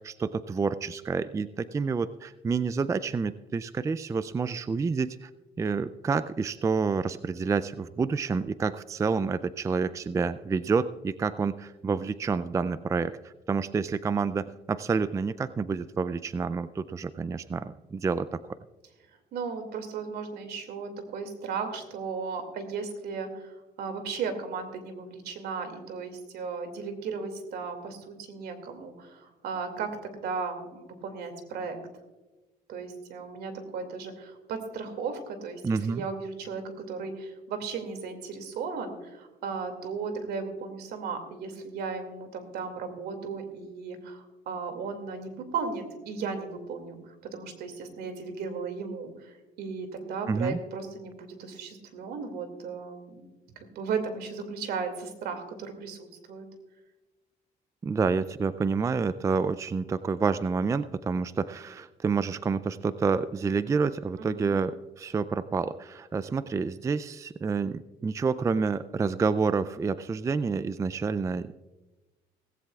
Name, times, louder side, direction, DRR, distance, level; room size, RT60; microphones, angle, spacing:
voice 1, 0.0-5.3 5.6-18.4 35.6-36.0 50.3-50.6 57.8-71.5, right 5 dB, 20° right, 15 dB, 0.3 m, -28 dB
voice 2, 19.3-31.8 32.7-35.6 35.9-53.3 53.6-56.5 64.2-64.6, right 5 dB, 70° right, 7 dB, 2.4 m, -36 dB
17.5 x 16.0 x 2.4 m, 1.1 s
cardioid pair, 110°, 17 cm